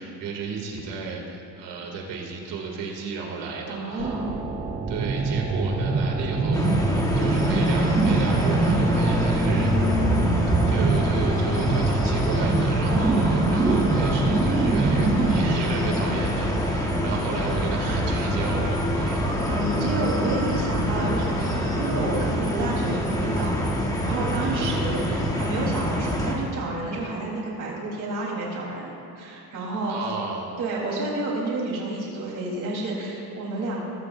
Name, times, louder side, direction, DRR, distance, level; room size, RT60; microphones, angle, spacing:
voice 1, 0.0-4.2 4.9-6.7 7.2-9.8 10.7-19.2 29.9-30.6, right 4 dB, 85° right, -1 dB, 2.6 m, -33 dB
voice 2, 3.7-4.3 12.9-13.2 15.9-16.1 19.1-23.7 24.0-28.9 29.2-30.0 30.6-33.8, right 2 dB, 45° right, -3 dB, 3.7 m, -30 dB
sound 1, 4.0-15.6, right 3 dB, 15° right, 0.5 m, -24 dB
sound 2, 6.5-26.3, equal, 10° left, 1.3 m, -25 dB
22.0 x 14.0 x 2.6 m, 2.7 s
cardioid pair, 170°, 41 cm